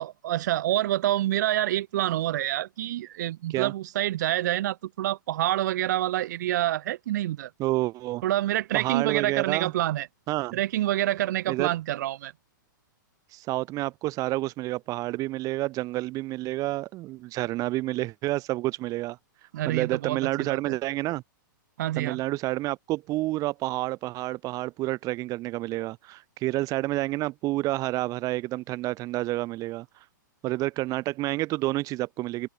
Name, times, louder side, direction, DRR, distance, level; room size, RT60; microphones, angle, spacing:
voice 1, 0.0-7.5 8.2-10.1 10.5-12.3 19.5-20.7 21.8-22.2, right 14 dB, 60° right, 3.0 m, -27 dB
voice 2, 7.6-8.2 8.7-9.7 10.3-10.6 11.5-11.7 13.3-19.2 19.6-21.2 21.9-29.9 30.4-32.5, right 18 dB, 35° right, 3.4 m, -29 dB
open air
hypercardioid pair, 130°, 11 cm